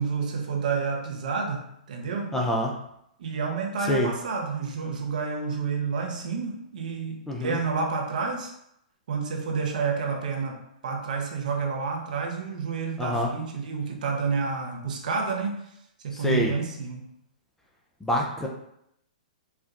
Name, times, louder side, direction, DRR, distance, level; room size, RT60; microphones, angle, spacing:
voice 1, 0.0-2.3 3.2-8.5 9.1-15.6 16.0-17.0, right 5 dB, 65° right, 1 dB, 0.8 m, -29 dB
voice 2, 2.3-2.7 3.9-4.1 7.3-7.6 13.0-13.3 16.1-16.5 18.0-18.5, left 1 dB, 5° left, 0 dB, 0.5 m, -26 dB
4.4 x 2.2 x 2.4 m, 0.76 s
hypercardioid pair, 125°, 5 cm